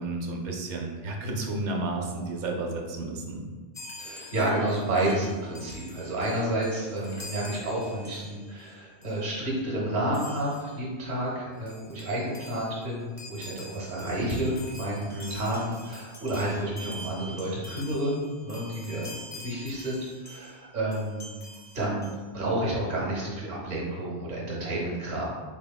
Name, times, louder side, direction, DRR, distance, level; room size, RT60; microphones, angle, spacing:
voice 1, 0.0-3.4 15.1-15.4, right 2 dB, 80° right, 1 dB, 0.9 m, -32 dB
Chime, 3.7-8.7 9.0-9.2 10.1-10.7 11.3-11.4 11.6-20.6 20.9-22.2, left 1 dB, 25° left, 0.3 m, -46 dB
voice 2, 4.0-18.2 18.4-21.4 21.7-25.2, right 1 dB, 45° right, -5 dB, 1.0 m, -30 dB
4.3 x 3.5 x 2.2 m, 1.4 s
omnidirectional pair, 1.2 m